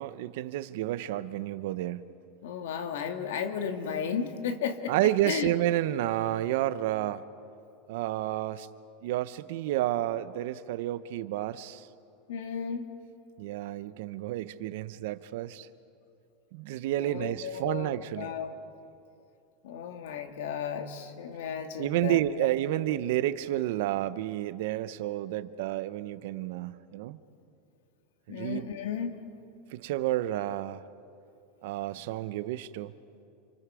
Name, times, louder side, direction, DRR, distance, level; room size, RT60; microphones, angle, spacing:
voice 1, 0.0-2.1 4.9-7.2 7.9-8.7 9.0-11.9 13.4-15.7 16.5-18.3 21.8-27.2 28.3-28.7 29.7-30.8 31.6-32.9, right 14 dB, 70° right, 14 dB, 0.8 m, -30 dB
voice 2, 2.4-4.9 5.2-5.5 12.3-12.9 17.0-18.5 19.6-22.2 28.3-29.1, left 7 dB, 85° left, 6 dB, 1.9 m, -34 dB
28.5 x 26.0 x 4.9 m, 2.7 s
supercardioid pair, 145°, 0 cm